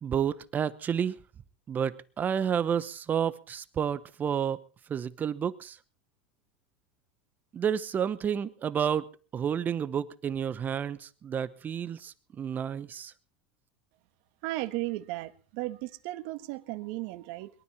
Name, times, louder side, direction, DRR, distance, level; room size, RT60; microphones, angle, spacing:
voice 1, 0.0-1.2 1.7-4.6 4.9-5.8 7.5-9.1 9.3-13.1, right 8 dB, 30° right, 0.9 m, -30 dB
voice 2, 14.4-17.5, right 18 dB, 60° right, 1.5 m, -35 dB
22.0 x 12.5 x 4.4 m
hypercardioid pair, 105°, 6 cm